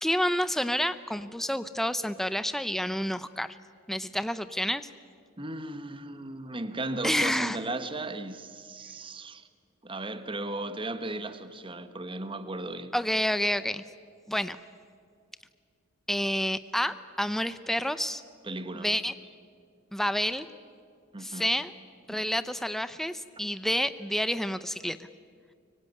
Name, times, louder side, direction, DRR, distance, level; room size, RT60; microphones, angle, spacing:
voice 1, 0.0-3.5 3.9-4.9 7.0-7.6 12.9-13.8 14.3-14.6 16.1-18.2 18.7-19.1 19.9-20.5 21.2-21.7 22.1-25.0, equal, ahead, 0.6 m, -29 dB
voice 2, 5.4-9.5 9.8-12.9 18.4-18.9 21.1-21.5 22.1-22.2, right 2 dB, 25° right, 1.4 m, -36 dB
24.5 x 24.0 x 9.6 m
head